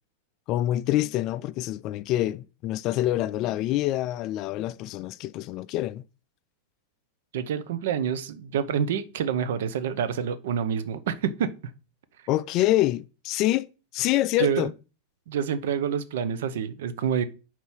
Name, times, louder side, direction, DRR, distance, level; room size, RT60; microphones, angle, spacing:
voice 1, 0.5-6.0 12.3-14.7, left 15 dB, 40° left, 0.3 m, -26 dB
voice 2, 7.3-11.5 14.4-14.7 15.3-17.2, right 8 dB, 55° right, 0.7 m, -27 dB
5.4 x 4.4 x 6.0 m
figure-of-eight pair, 90°, 0 cm